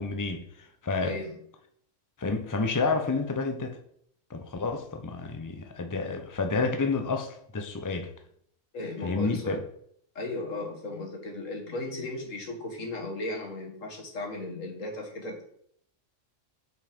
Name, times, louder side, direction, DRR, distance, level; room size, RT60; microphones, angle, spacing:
voice 1, 0.0-1.2 2.2-3.8 4.3-8.1 9.0-9.6, left 4 dB, 15° left, 5 dB, 0.8 m, -30 dB
voice 2, 1.0-1.4 8.7-9.6 10.2-15.4, left 2 dB, 90° left, 2 dB, 2.2 m, -36 dB
7.9 x 5.6 x 5.3 m, 0.68 s
omnidirectional pair, 1.3 m